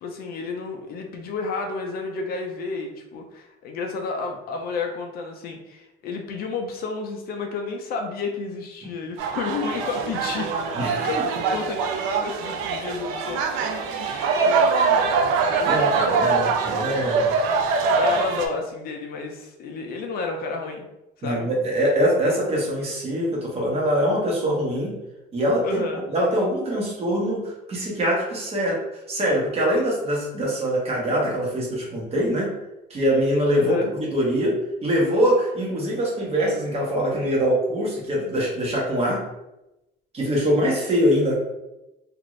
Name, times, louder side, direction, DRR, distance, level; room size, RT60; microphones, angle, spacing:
voice 1, 0.0-10.5 10.9-13.5 14.0-14.5 17.9-20.9 21.2-21.5 25.6-26.1 33.6-33.9, left 4 dB, 50° left, 3 dB, 0.5 m, -31 dB
sound 1, 9.2-18.5, right 4 dB, 85° right, 0.5 m, -23 dB
voice 2, 10.7-11.1 15.6-17.3 21.2-24.9 25.3-25.8 26.1-28.8 29.1-32.5 32.9-34.6 34.8-39.2 40.1-41.4, equal, 30° right, -3 dB, 1.0 m, -23 dB
2.5 x 2.5 x 3.1 m, 0.92 s
cardioid pair, 135°, 20 cm